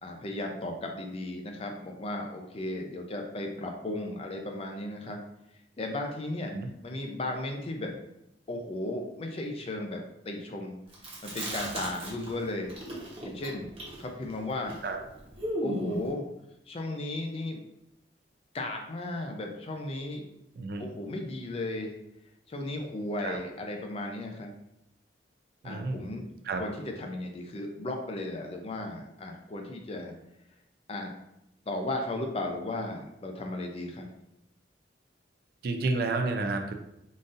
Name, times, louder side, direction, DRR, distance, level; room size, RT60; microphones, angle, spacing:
voice 1, 0.0-5.2 5.8-6.5 6.8-8.0 8.5-10.8 11.2-12.8 13.2-13.7 14.0-14.8 15.6-16.2 16.7-17.6 18.5-20.3 20.8-22.0 22.5-24.5 25.6-26.3 26.6-30.2 30.9-31.1 31.7-34.1, left 2 dB, 35° left, 3 dB, 0.4 m, -35 dB
Chewing mastication, 10.9-12.4 12.7-16.1, right 1 dB, 35° right, 0.9 m, -36 dB
voice 2, 25.6-26.0 26.5-26.6 35.6-36.7, right 3 dB, 55° right, 5 dB, 0.4 m, -30 dB
3.8 x 2.5 x 2.5 m, 0.82 s
head